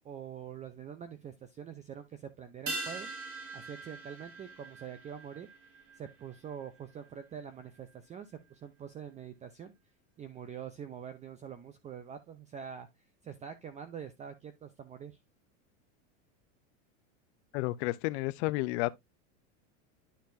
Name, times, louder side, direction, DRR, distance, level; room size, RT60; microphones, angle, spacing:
voice 1, 0.0-3.1 3.5-5.5 6.0-9.7 10.2-12.9 13.2-15.2, right 8 dB, 20° right, 0.6 m, -45 dB
sound 1, 2.7-7.4 7.6-7.7, right 2 dB, 35° right, 2.4 m, -43 dB
voice 2, 17.5-18.9, left 20 dB, 55° left, 0.7 m, -31 dB
11.5 x 4.3 x 2.6 m
supercardioid pair, 140°, 39 cm